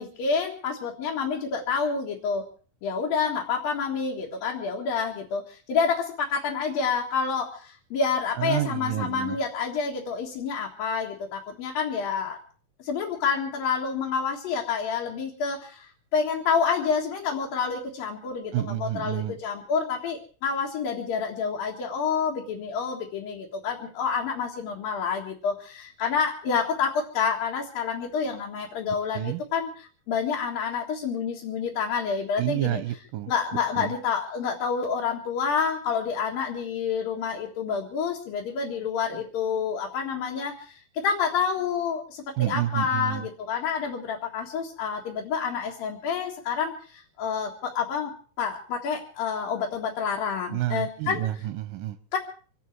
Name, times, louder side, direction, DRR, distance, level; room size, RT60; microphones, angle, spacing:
voice 1, 0.0-2.4 2.8-12.4 12.8-32.8 33.3-51.2 52.1-52.2, left 6 dB, 70° left, -3 dB, 3.5 m, -28 dB
voice 2, 8.4-9.4 18.5-19.4 29.1-29.4 32.4-33.3 33.8-33.9 42.4-43.3 50.5-52.0, right 14 dB, 75° right, 11 dB, 2.4 m, -29 dB
26.5 x 10.5 x 4.7 m, 0.41 s
omnidirectional pair, 4.3 m